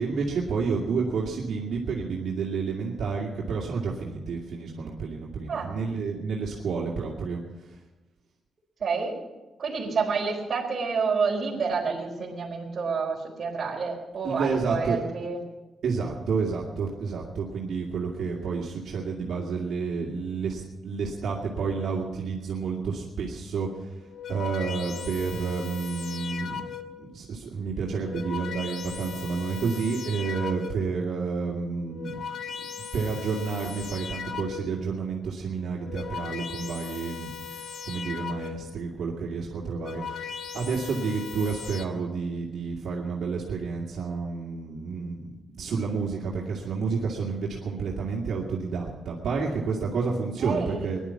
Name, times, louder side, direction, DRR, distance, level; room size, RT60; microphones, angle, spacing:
voice 1, 0.0-7.8 14.2-15.0 15.8-23.9 24.3-26.6 27.0-32.1 32.9-37.3 37.9-51.0, right 5 dB, 65° right, -4 dB, 2.5 m, -30 dB
voice 2, 8.8-9.1 9.6-15.4 50.4-50.9, right 5 dB, 40° right, -1 dB, 4.3 m, -29 dB
sound 1, 24.0-27.1 27.8-31.0 31.7-34.9 35.6-38.8 39.5-41.8, left 7 dB, 60° left, 1.3 m, -38 dB
20.5 x 11.5 x 6.0 m, 1.1 s
wide cardioid pair, 150°, 0 cm